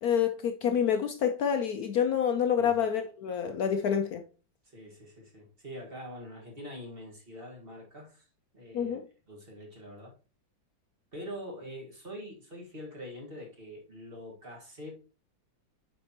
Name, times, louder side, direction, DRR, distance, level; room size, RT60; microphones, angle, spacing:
voice 1, 0.0-4.2 8.7-9.0, left 8 dB, 65° left, 0.9 m, -27 dB
voice 2, 4.6-8.3 8.5-9.0 9.3-10.1 11.1-14.9, equal, 30° right, 1.9 m, -44 dB
8.6 x 5.3 x 2.9 m
omnidirectional pair, 2.1 m